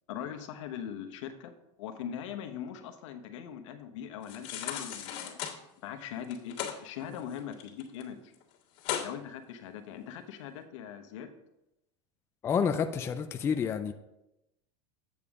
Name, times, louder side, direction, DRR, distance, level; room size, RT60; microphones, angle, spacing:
voice 1, 0.1-1.5 1.8-5.4 5.8-8.3 9.0-11.3, left 9 dB, 80° left, 1.1 m, -41 dB
sound 1, 4.2-5.6 6.2-6.8 7.1-8.0 8.3-8.4 8.8-9.1 9.6-9.7, left 10 dB, 55° left, 1.8 m, -36 dB
voice 2, 12.4-13.9, left 6 dB, 15° left, 0.3 m, -29 dB
8.4 x 7.0 x 3.6 m
supercardioid pair, 150°, 16 cm